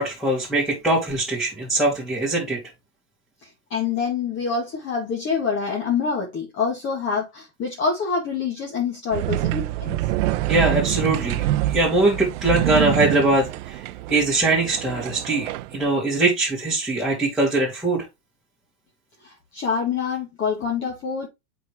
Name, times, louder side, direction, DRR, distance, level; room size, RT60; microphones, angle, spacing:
voice 1, 0.0-2.6 10.5-11.4 11.7-13.7 14.1-18.0, right 2 dB, ahead, 2.4 m, -22 dB
voice 2, 3.4-10.0 19.2-21.3, left 5 dB, 25° left, 1.9 m, -26 dB
sound 1, 9.1-15.9, right 16 dB, 55° right, 0.7 m, -26 dB
7.9 x 5.1 x 3.1 m
supercardioid pair, 140°, 44 cm